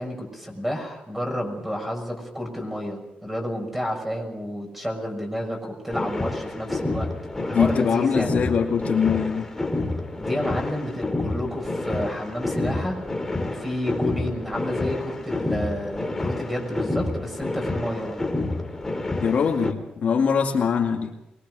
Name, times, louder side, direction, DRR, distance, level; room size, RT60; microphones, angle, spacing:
voice 1, 0.0-7.1 7.4-8.3 10.2-13.0 13.4-18.2, equal, 10° right, 2 dB, 6.2 m, -30 dB
sound 1, 5.9-19.7, left 2 dB, 10° left, 2.4 m, -29 dB
voice 2, 7.5-9.5 19.2-21.1, left 6 dB, 55° left, 1 dB, 2.3 m, -22 dB
24.0 x 22.0 x 6.4 m, 0.90 s
cardioid pair, 140°, 3 cm